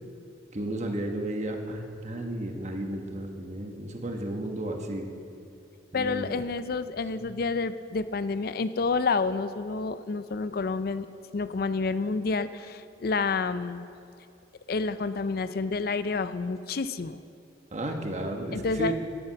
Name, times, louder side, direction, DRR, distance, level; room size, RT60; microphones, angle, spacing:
voice 1, 0.5-5.1 5.9-6.3 7.2-7.3 17.7-18.9, right 1 dB, 40° right, 3 dB, 1.2 m, -33 dB
voice 2, 5.9-11.1 11.3-13.9 14.7-17.2 18.5-18.9, left 4 dB, 55° left, 13 dB, 0.5 m, -29 dB
12.5 x 10.5 x 5.8 m, 2.6 s
head